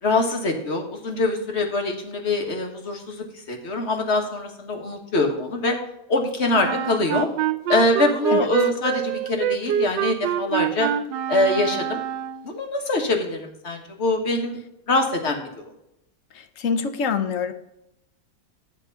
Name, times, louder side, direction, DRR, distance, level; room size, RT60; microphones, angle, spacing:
voice 1, 0.0-5.7 6.1-7.3 7.7-10.9 11.3-12.0 12.4-14.6 14.9-15.5, left 2 dB, 40° left, 3 dB, 1.5 m, -24 dB
Wind instrument woodwind instrument, 6.5-12.6, right 10 dB, 85° right, 1.3 m, -26 dB
voice 2, 16.3-17.5, left 6 dB, 60° left, 9 dB, 0.9 m, -25 dB
10.0 x 3.6 x 6.6 m, 0.83 s
omnidirectional pair, 1.9 m